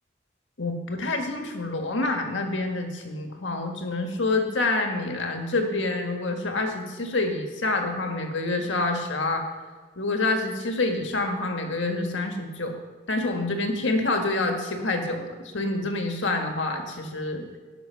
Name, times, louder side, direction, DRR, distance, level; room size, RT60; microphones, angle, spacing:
voice 1, 0.6-9.4 10.0-12.7 13.1-17.5, left 2 dB, 90° left, 4 dB, 1.7 m, -27 dB
18.0 x 6.3 x 5.8 m, 1.4 s
head